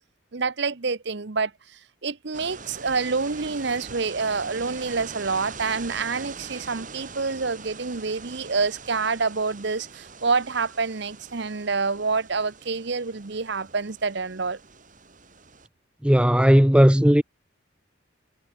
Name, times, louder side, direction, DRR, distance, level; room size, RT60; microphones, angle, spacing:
voice 1, 0.3-1.5 2.0-14.6, right 4 dB, 55° right, 0.9 m, -27 dB
sound 1, 2.3-15.7, right 4 dB, 40° right, 4.2 m, -42 dB
voice 2, 16.0-17.2, equal, 5° right, 0.7 m, -16 dB
head